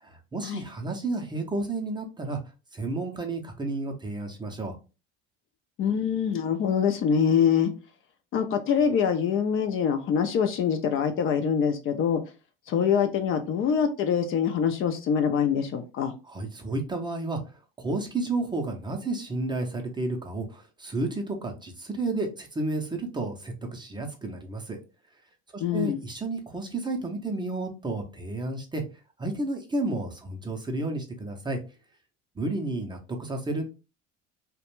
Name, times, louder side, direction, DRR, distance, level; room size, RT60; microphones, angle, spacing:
voice 1, 0.0-2.4 2.7-4.8 16.2-17.4 17.8-24.8 25.5-28.8 29.2-31.6 32.4-33.6, right 2 dB, 15° right, 3 dB, 0.5 m, -31 dB
voice 2, 5.8-7.7 8.3-12.2 12.7-16.1 25.6-26.0, left 7 dB, 45° left, 7 dB, 0.4 m, -24 dB
2.4 x 2.1 x 2.9 m, 0.31 s
supercardioid pair, 105°, 30 cm